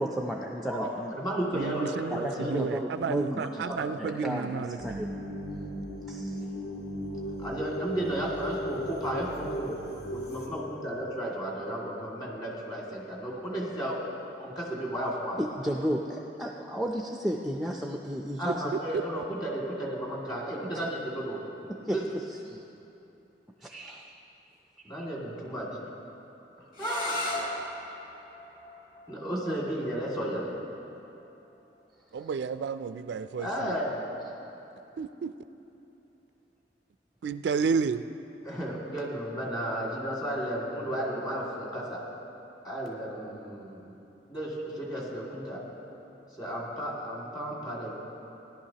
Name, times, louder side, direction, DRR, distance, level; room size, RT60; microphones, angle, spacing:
voice 1, 0.0-1.1 2.1-3.7 4.0-5.1 6.1-6.4 15.4-18.8 21.9-22.0 22.5-22.6 23.6-24.1 24.8-25.1 32.1-32.3, equal, ahead, 0 dB, 0.4 m, -33 dB
voice 2, 0.6-2.5 3.6-3.9 7.4-9.8 10.1-14.1 14.4-15.4 18.4-21.4 21.9-22.1 24.8-25.7 26.8-27.3 29.1-30.5 33.4-34.0 38.4-42.0 42.6-43.8 44.3-45.6 46.4-47.9, right 1 dB, 25° left, -4 dB, 2.2 m, -33 dB
voice 3, 1.5-5.0 32.1-33.7 35.0-35.3 37.2-38.0, right 5 dB, 75° right, 12 dB, 0.3 m, -31 dB
sound 1, 4.8-10.5, equal, 70° left, 1.6 m, -37 dB
sound 2, 26.7-32.5, left 2 dB, 50° left, 1.6 m, -39 dB
17.0 x 11.0 x 2.9 m, 3.0 s
head